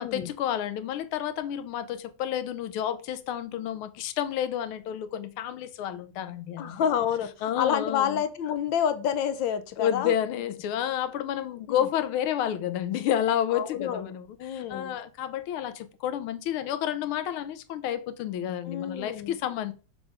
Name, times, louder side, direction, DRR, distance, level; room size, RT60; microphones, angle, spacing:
voice 1, 0.0-7.0 7.4-8.2 9.8-19.7, left 10 dB, 90° left, 1.6 m, -30 dB
voice 2, 6.6-10.1 11.7-11.8 13.5-14.1 14.4-15.0 18.6-19.4, left 8 dB, 70° left, 1.3 m, -29 dB
6.6 x 3.8 x 4.8 m
omnidirectional pair, 2.3 m